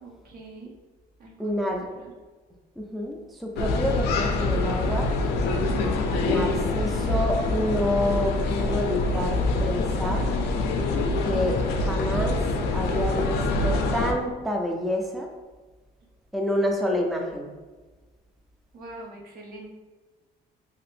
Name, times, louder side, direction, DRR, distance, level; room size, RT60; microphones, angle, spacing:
voice 1, 0.0-0.7 1.2-2.1 18.7-19.7, right 2 dB, 65° right, -1 dB, 0.8 m, -44 dB
voice 2, 1.4-1.9 2.8-5.1 6.2-10.3 11.2-12.4 12.7-15.3 16.3-17.5, equal, ahead, 1 dB, 0.3 m, -28 dB
sound 1, 3.6-14.1, left 2 dB, 75° left, 0.4 m, -25 dB
2.8 x 2.5 x 3.2 m, 1.3 s
cardioid pair, 110°, 17 cm